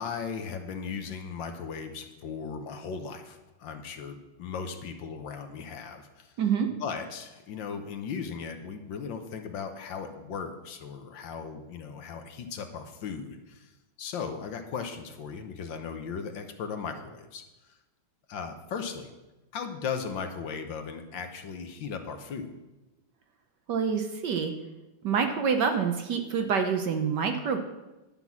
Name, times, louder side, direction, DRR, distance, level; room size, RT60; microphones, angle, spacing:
voice 1, 0.0-6.3 6.8-13.7 14.0-17.4 18.3-19.1 19.5-22.5, left 6 dB, 65° left, 6 dB, 1.5 m, -37 dB
voice 2, 6.4-6.7 23.7-24.5 25.0-27.6, right 6 dB, 65° right, 6 dB, 1.3 m, -27 dB
11.0 x 5.9 x 7.2 m, 1.0 s
omnidirectional pair, 2.3 m